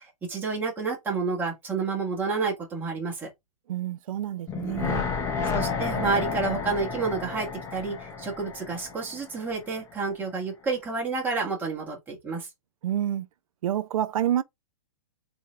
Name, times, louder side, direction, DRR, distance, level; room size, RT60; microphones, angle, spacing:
voice 1, 0.0-3.3 5.4-12.5, right 4 dB, 10° right, 1.6 m, -30 dB
voice 2, 3.7-5.1 12.8-13.3 13.6-14.4, right 11 dB, 65° right, 0.6 m, -28 dB
sound 1, 4.5-9.6 9.9-10.0, left 5 dB, 15° left, 1.0 m, -31 dB
3.8 x 2.9 x 3.2 m
hypercardioid pair, 145°, 19 cm